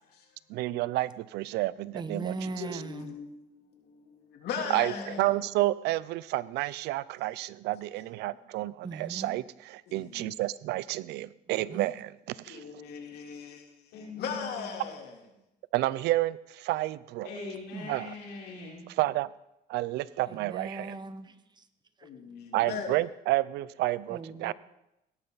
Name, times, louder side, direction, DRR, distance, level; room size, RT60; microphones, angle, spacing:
voice 1, 0.5-2.3 4.7-4.9 5.2-9.4 9.9-12.1 12.4-12.6 15.7-17.3 17.9-18.1 18.9-19.3 19.7-20.9 22.5-24.5, right 17 dB, 85° right, 19 dB, 0.5 m, -30 dB
voice 2, 1.9-3.2 8.8-9.3 11.7-11.9 17.7-18.0 20.3-21.7 22.0-22.1 24.1-24.5, right 3 dB, 25° right, 11 dB, 0.9 m, -39 dB
voice 3, 2.6-5.4 8.3-8.4 9.9-10.3 12.5-15.2 22.0-23.0, left 6 dB, 70° left, 1 dB, 3.1 m, -39 dB
voice 4, 4.6-5.4 13.9-14.8 17.2-18.8, left 3 dB, 85° left, -3 dB, 4.9 m, -42 dB
17.5 x 12.0 x 4.0 m, 0.86 s
cardioid pair, 110°, 17 cm